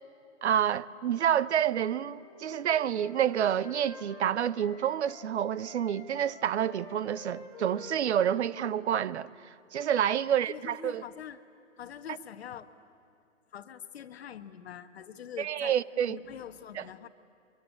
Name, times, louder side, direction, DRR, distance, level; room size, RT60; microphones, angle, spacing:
voice 1, 0.4-11.0 15.4-16.2 16.8-16.9, right 9 dB, 60° right, 0.8 m, -28 dB
Wind instrument woodwind instrument, 1.7-5.3 5.6-9.4, left 4 dB, 10° left, 2.4 m, -49 dB
voice 2, 10.2-11.4 11.7-12.7 13.5-15.8 16.1-17.1, left 9 dB, 55° left, 1.2 m, -44 dB
25.5 x 24.0 x 9.8 m
hypercardioid pair, 150°, 39 cm